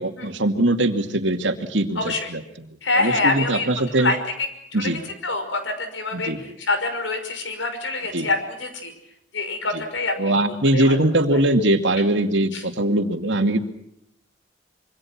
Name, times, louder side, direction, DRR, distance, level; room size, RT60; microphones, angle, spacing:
voice 1, 0.0-2.4 2.9-4.1 4.7-5.0 6.1-6.4 8.1-8.3 10.2-13.6, right 1 dB, 75° right, 6 dB, 2.5 m, -21 dB
voice 2, 2.8-6.3 6.6-8.9 9.3-11.0 12.5-12.6, left 3 dB, 80° left, 7 dB, 5.7 m, -26 dB
26.0 x 24.5 x 6.1 m, 0.77 s
head